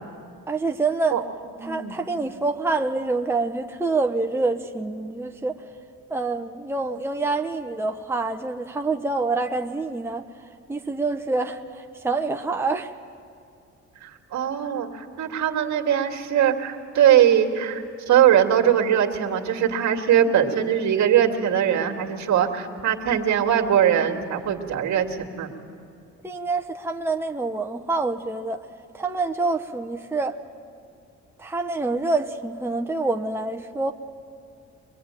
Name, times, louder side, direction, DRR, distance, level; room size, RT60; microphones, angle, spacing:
voice 1, 0.5-1.2 1.6-5.6 6.1-10.2 10.7-12.9 20.4-20.5 26.2-28.6 28.9-30.4 31.4-33.9, right 3 dB, 10° right, 4 dB, 1.0 m, -26 dB
voice 2, 1.6-2.0 14.0-25.5, right 9 dB, 65° right, 2 dB, 2.3 m, -21 dB
24.5 x 21.5 x 9.0 m, 2.5 s
cardioid pair, 90°, 30 cm